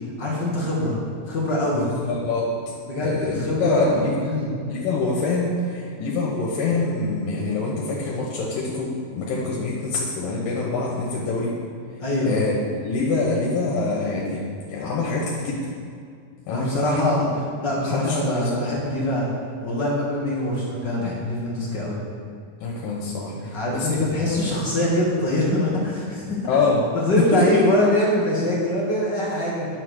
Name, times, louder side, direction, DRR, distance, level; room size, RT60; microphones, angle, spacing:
voice 1, 0.2-0.9 1.3-1.9 2.9-4.5 12.0-12.3 16.5-17.2 17.6-19.3 19.6-22.0 23.4-26.4 26.9-29.7, left 1 dB, 45° left, -4 dB, 1.7 m, -23 dB
voice 2, 1.7-2.5 3.0-4.2 4.7-11.6 12.3-12.5 12.8-15.7 16.5-17.3 17.9-18.5 22.6-24.5 26.5-26.9 27.3-27.6, left 3 dB, 80° left, -3 dB, 2.9 m, -25 dB
10.0 x 6.5 x 6.5 m, 2.3 s
omnidirectional pair, 3.9 m